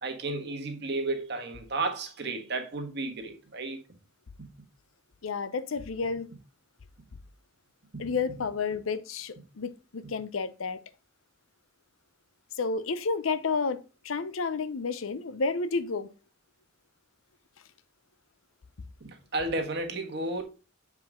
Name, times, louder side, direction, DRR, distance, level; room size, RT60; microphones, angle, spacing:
voice 1, 0.0-3.8 4.4-4.5 7.9-8.1 19.0-20.4, right 2 dB, 55° right, 1.4 m, -33 dB
voice 2, 5.2-6.3 8.0-10.8 12.6-16.1, left 4 dB, 85° left, 0.6 m, -31 dB
7.6 x 4.9 x 3.7 m
head